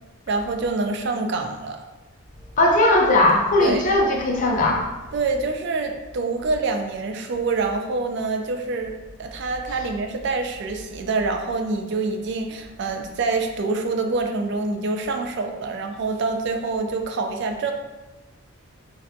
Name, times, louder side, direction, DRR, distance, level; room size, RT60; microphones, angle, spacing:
voice 1, 0.3-1.8 3.6-3.8 5.1-17.7, right 3 dB, 50° right, 5 dB, 0.3 m, -26 dB
voice 2, 2.6-4.9, left 2 dB, 35° left, -1 dB, 0.4 m, -18 dB
3.2 x 2.5 x 2.6 m, 1.1 s
head